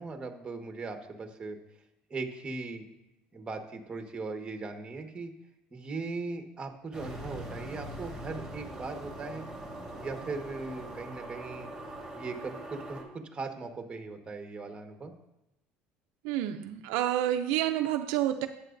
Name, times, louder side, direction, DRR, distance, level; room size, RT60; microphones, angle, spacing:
voice 1, 0.0-1.6 2.1-2.8 3.3-5.3 5.7-9.4 10.0-11.7 12.1-15.1, right 3 dB, 25° right, 4 dB, 1.5 m, -39 dB
sound 1, 6.9-13.0, right 1 dB, 5° right, 4.0 m, -42 dB
voice 2, 16.2-18.5, right 12 dB, 80° right, 7 dB, 0.5 m, -29 dB
14.0 x 8.0 x 2.6 m, 0.89 s
supercardioid pair, 100°, 4 cm